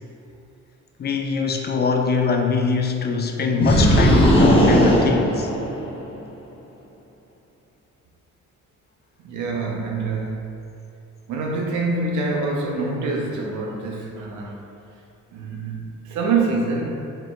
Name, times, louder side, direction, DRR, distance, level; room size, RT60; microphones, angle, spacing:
voice 1, 1.0-5.5, left 5 dB, 35° left, 4 dB, 0.4 m, -22 dB
sound 1, 3.6-6.1, equal, 20° left, 1.0 m, -17 dB
voice 2, 9.2-10.6 11.3-14.6 15.3-16.9, right 3 dB, 75° right, -1 dB, 0.8 m, -25 dB
4.4 x 3.8 x 2.4 m, 2.6 s
cardioid pair, 90°, 30 cm